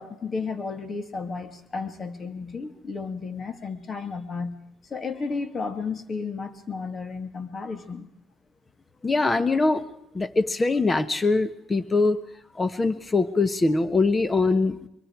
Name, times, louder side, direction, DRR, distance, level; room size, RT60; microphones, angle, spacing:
voice 1, 0.0-4.6 4.8-8.1, left 4 dB, 40° left, 8 dB, 2.5 m, -33 dB
voice 2, 9.0-9.8 10.1-12.2 12.5-14.9, left 3 dB, 25° left, 12 dB, 1.5 m, -23 dB
24.0 x 23.0 x 4.8 m, 0.79 s
supercardioid pair, 70°, 0 cm